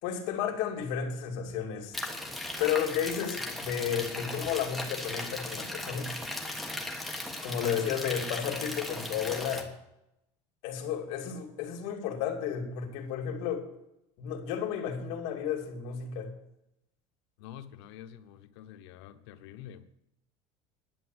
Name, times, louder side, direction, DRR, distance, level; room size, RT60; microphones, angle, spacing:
voice 1, 0.0-1.9 2.6-6.1 7.4-9.7 10.6-13.7 14.2-16.3, left 8 dB, 60° left, 2.5 m, -32 dB
sound 1, 1.9-9.6, left 1 dB, ahead, 1.3 m, -37 dB
voice 2, 17.4-19.9, left 10 dB, 80° left, 1.1 m, -47 dB
11.0 x 7.9 x 7.8 m
cardioid pair, 170°, 13 cm